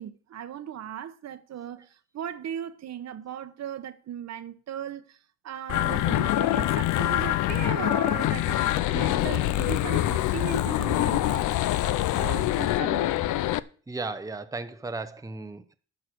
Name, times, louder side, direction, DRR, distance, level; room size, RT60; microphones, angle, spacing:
voice 1, 0.0-1.9 2.1-5.2 5.4-11.6 12.2-13.1, right 10 dB, 60° right, 1.0 m, -37 dB
sound 1, 5.7-13.6, left 14 dB, 80° left, 0.6 m, -25 dB
voice 2, 13.9-15.7, right 3 dB, 10° right, 0.8 m, -35 dB
11.0 x 6.4 x 6.2 m
cardioid pair, 90°, 30 cm